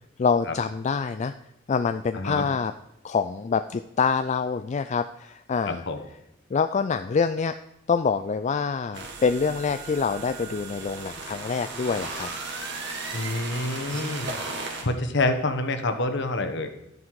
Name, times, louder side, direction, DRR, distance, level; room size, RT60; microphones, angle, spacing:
voice 1, 0.2-1.3 1.7-2.7 3.0-5.8 6.5-7.6 7.9-12.3 13.9-14.4, left 5 dB, 35° left, 9 dB, 0.3 m, -26 dB
voice 2, 2.1-2.5 5.6-6.0 13.1-14.3 14.8-16.7, left 2 dB, 60° left, 8 dB, 1.2 m, -27 dB
sound 1, 8.9-14.8, right 3 dB, 65° right, 2.1 m, -35 dB
12.0 x 9.6 x 4.8 m, 0.83 s
head